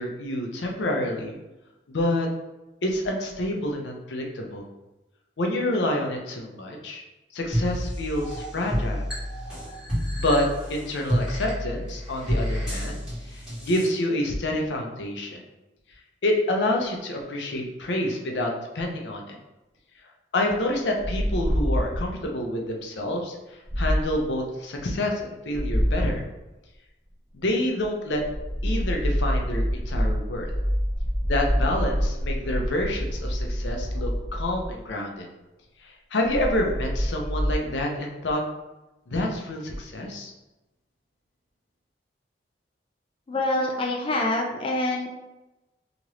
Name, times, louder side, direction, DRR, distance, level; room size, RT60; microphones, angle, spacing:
voice 1, 0.0-1.3 1.9-2.3 2.8-4.7 5.4-7.0 7.3-9.1 10.2-13.0 13.3-15.4 16.2-19.4 20.3-23.3 23.8-26.2 27.3-28.2 28.6-30.5 31.3-35.3 35.8-38.4 39.1-40.3, left 1 dB, 80° left, 1 dB, 0.6 m, -28 dB
sound 1, 7.5-13.9, equal, 5° right, 1.3 m, -29 dB
sound 2, 21.0-22.2 23.7-24.3 25.5-26.2 28.1-34.9 36.2-37.6, equal, 15° left, 1.2 m, -26 dB
voice 2, 43.3-45.1, left 2 dB, 30° left, 0 dB, 0.3 m, -26 dB
2.9 x 2.5 x 3.1 m, 1.0 s
head